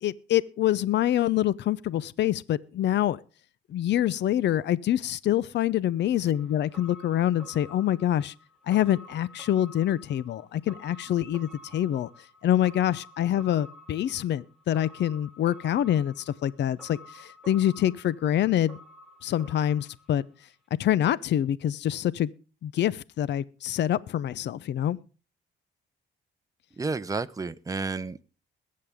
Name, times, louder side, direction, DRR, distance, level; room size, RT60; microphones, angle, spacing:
voice 1, 0.0-3.2 3.7-8.3 8.7-12.1 12.4-18.8 19.2-20.2 20.8-22.3 22.6-25.0, left 11 dB, 60° left, 0.6 m, -26 dB
sound 1, 6.3-20.5 20.8-20.9, left 1 dB, ahead, 3.2 m, -50 dB
voice 2, 26.7-28.2, right 3 dB, 15° right, 0.8 m, -31 dB
21.5 x 8.6 x 3.5 m
cardioid pair, 90°, 20 cm